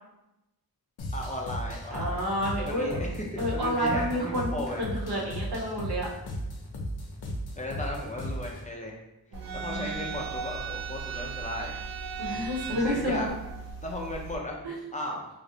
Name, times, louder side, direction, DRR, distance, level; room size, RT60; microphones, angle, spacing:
sound 1, 1.0-8.7, equal, 85° left, 0.6 m, -36 dB
voice 1, 1.1-2.2 2.6-4.8 7.6-9.0 9.5-11.7 12.3-12.4 12.7-13.3 13.8-14.6 14.9-15.2, left 1 dB, 20° left, -2 dB, 0.4 m, -35 dB
voice 2, 1.9-3.0 3.4-6.1 9.3-10.1 12.2-13.2 14.6-14.8, equal, 85° right, -4 dB, 0.9 m, -30 dB
sound 2, 9.3-14.4, right 6 dB, 65° right, 0.5 m, -37 dB
2.5 x 2.0 x 3.7 m, 0.92 s
wide cardioid pair, 95°, 37 cm